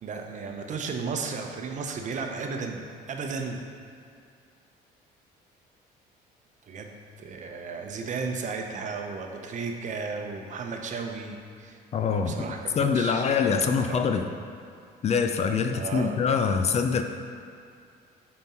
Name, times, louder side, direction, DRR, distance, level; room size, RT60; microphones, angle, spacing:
voice 1, 0.0-3.6 6.6-11.8 12.1-14.3 15.7-16.2, right 4 dB, 45° right, 3 dB, 0.8 m, -34 dB
voice 2, 11.9-14.3 15.0-17.0, left 6 dB, 40° left, 6 dB, 0.4 m, -25 dB
7.1 x 4.4 x 4.3 m, 2.3 s
cardioid pair, 110°, 17 cm